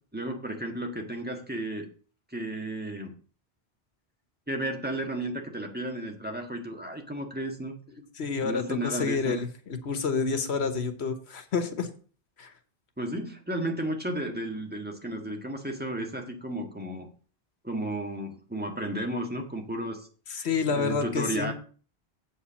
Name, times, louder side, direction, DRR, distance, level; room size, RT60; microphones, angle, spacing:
voice 1, 0.1-1.9 2.3-3.1 4.5-7.7 8.4-9.4 13.0-17.1 17.6-20.1 20.6-21.5, right 1 dB, 10° right, 2 dB, 1.6 m, -33 dB
voice 2, 8.2-11.9 12.4-12.5 20.3-21.5, left 5 dB, 85° left, 8 dB, 1.4 m, -29 dB
8.1 x 4.7 x 7.0 m, 0.40 s
omnidirectional pair, 1.1 m